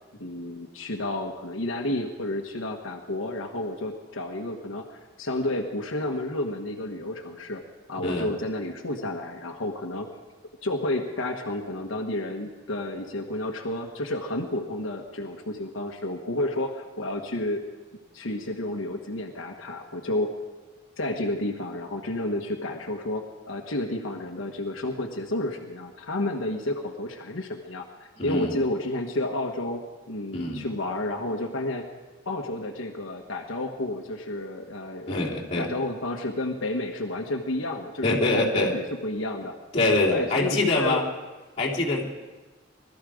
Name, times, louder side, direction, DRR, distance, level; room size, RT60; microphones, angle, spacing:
voice 1, 0.2-7.6 7.9-10.1 10.6-17.6 18.1-20.3 21.0-27.9 28.2-31.9 32.2-35.2 35.6-39.5 40.1-41.0, left 1 dB, 85° left, 2 dB, 1.3 m, -31 dB
voice 2, 8.0-8.3 28.2-28.6 30.3-30.6 35.1-35.7 38.0-38.7 39.7-41.0 41.6-42.0, left 2 dB, 30° left, -6 dB, 3.2 m, -24 dB
20.5 x 13.0 x 5.0 m, 1.2 s
head